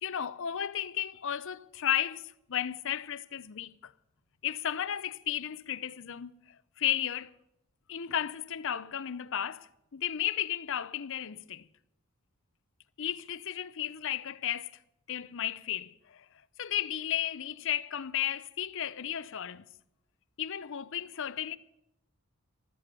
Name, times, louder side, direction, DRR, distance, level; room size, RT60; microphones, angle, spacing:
voice 1, 0.0-3.9 4.4-7.3 7.9-11.7 13.0-14.8 15.1-16.3 16.6-19.7 20.4-21.6, left 10 dB, 60° left, 0.6 m, -34 dB
15.5 x 13.0 x 5.3 m
head